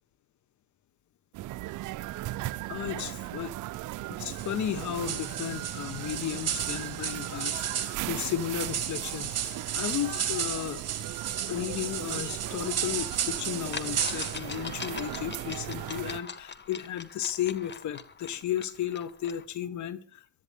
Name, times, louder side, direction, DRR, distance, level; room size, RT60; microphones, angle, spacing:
sound 1, 1.3-16.2, right 16 dB, 80° right, 0.6 m, -38 dB
voice 1, 2.7-3.5 4.1-10.8 11.5-20.2, left 10 dB, 70° left, 16 dB, 1.4 m, -34 dB
sound 2, 4.3-14.4, right 9 dB, 55° right, 3.0 m, -34 dB
sound 3, 13.1-13.2 13.7-19.4, left 5 dB, 35° left, 1.5 m, -42 dB
22.5 x 13.0 x 3.5 m, 0.38 s
cardioid pair, 90°, 30 cm